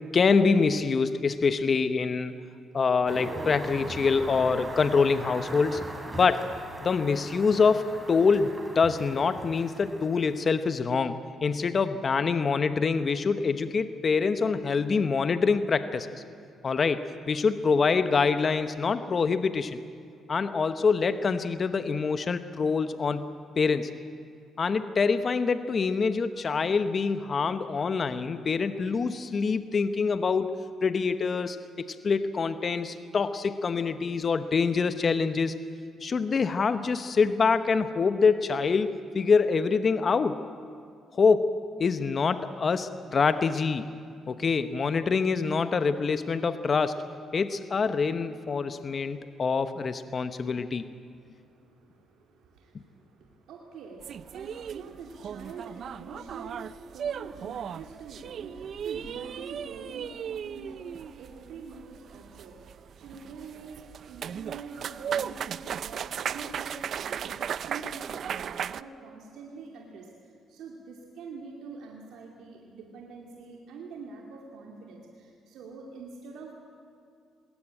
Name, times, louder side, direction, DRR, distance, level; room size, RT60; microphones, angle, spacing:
voice 1, 0.1-2.4 2.7-5.9 6.1-6.5 6.8-11.2 11.4-16.1 16.6-19.8 20.3-23.3 23.6-23.9 24.6-35.6 36.0-40.4 41.1-43.9 44.3-47.0 47.3-50.8, left 5 dB, 45° left, 10 dB, 1.0 m, -25 dB
sound 1, 3.1-10.5, right 2 dB, 25° right, 3.5 m, -40 dB
voice 2, 51.1-76.5, right 4 dB, 80° right, 0 dB, 2.6 m, -45 dB
sound 2, 54.0-68.8, right 8 dB, 60° right, 0.5 m, -36 dB
21.0 x 17.5 x 9.0 m, 2.4 s
cardioid pair, 90°, 0 cm